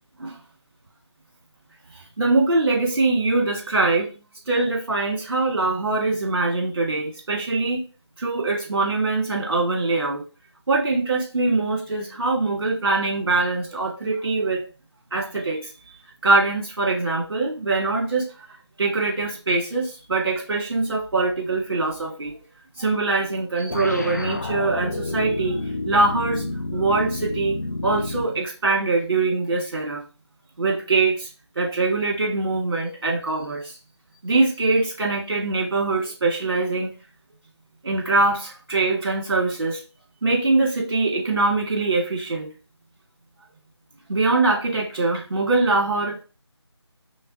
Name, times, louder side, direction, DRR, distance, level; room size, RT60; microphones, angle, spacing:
voice 1, 2.2-4.1 4.5-7.8 8.2-10.2 10.7-14.6 15.1-15.7 16.2-18.3 18.8-22.4 22.8-26.4 26.7-30.0 30.6-31.3 31.6-33.7 34.2-36.9 37.8-39.8 40.2-42.5 44.1-46.2, right 3 dB, 55° right, 0 dB, 1.9 m, -23 dB
sound 1, 23.7-28.4, left 2 dB, 35° left, 0.4 m, -30 dB
5.1 x 3.3 x 2.8 m, 0.33 s
figure-of-eight pair, 165°, 15 cm